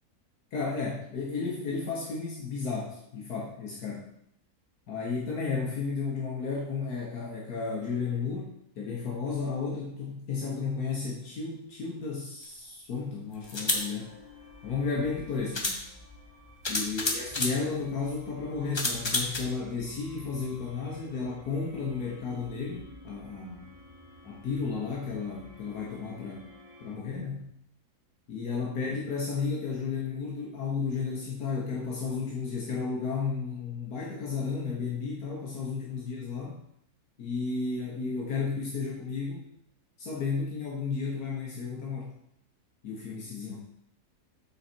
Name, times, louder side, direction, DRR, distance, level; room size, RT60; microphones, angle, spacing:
voice 1, 0.5-4.1 4.9-14.1 14.6-15.8 16.7-23.7 24.2-26.5 26.8-27.5 28.3-36.6 37.2-39.4 40.0-42.1 42.8-43.6, left 5 dB, 75° left, -3 dB, 1.6 m, -33 dB
sound 1, 12.4-12.5 13.4-13.9 15.0-15.1 15.5-15.8 16.6-17.6 18.7-19.4, left 2 dB, 25° left, 0.6 m, -29 dB
sound 2, 13.4-26.9, left 1 dB, 15° right, 2.2 m, -51 dB
7.7 x 4.1 x 4.4 m, 0.74 s
omnidirectional pair, 1.7 m